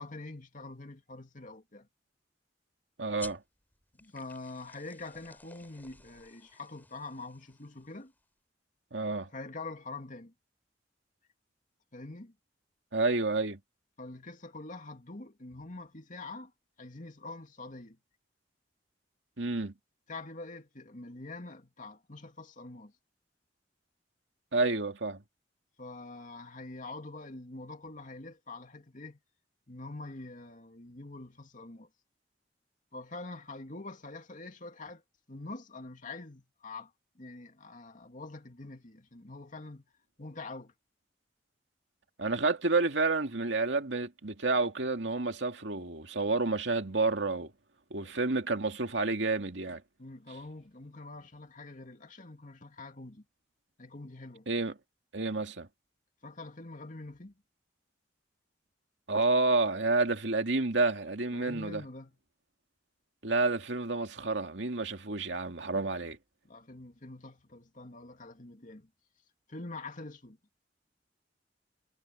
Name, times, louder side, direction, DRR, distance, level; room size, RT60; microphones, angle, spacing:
voice 1, 0.0-1.9 4.0-8.1 9.3-10.3 11.9-12.3 14.0-16.5 16.8-18.0 20.1-22.9 25.8-29.2 29.7-31.9 32.9-35.0 35.3-39.8 40.2-40.7 48.0-48.1 50.0-53.3 53.8-54.5 56.2-57.3 61.3-62.1 65.9-66.0 66.4-68.9 69.5-70.4, left 2 dB, 45° left, 2.5 m, -45 dB
voice 2, 3.0-3.4 8.9-9.3 12.9-13.6 19.4-19.7 24.5-25.2 42.2-47.5 47.9-49.8 54.5-54.7 55.1-55.7 59.1-61.8 63.2-66.2, right 3 dB, 85° right, 2.3 m, -29 dB
sound 1, 3.2-8.2, left 2 dB, 10° left, 4.3 m, -53 dB
head